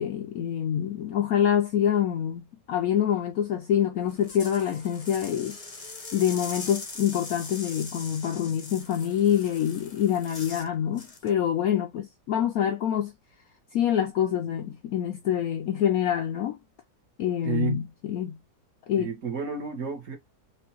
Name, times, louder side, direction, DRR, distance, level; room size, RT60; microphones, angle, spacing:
voice 1, 0.0-5.6 6.1-13.1 13.7-16.6 17.2-18.4 18.9-19.1, left 9 dB, 70° left, 0.8 m, -26 dB
sound 1, 4.0-10.7 11.0-11.3, left 3 dB, 35° left, 0.6 m, -41 dB
voice 2, 17.4-17.8 19.0-20.2, right 6 dB, 50° right, 1.4 m, -31 dB
4.4 x 2.5 x 2.8 m
omnidirectional pair, 1.9 m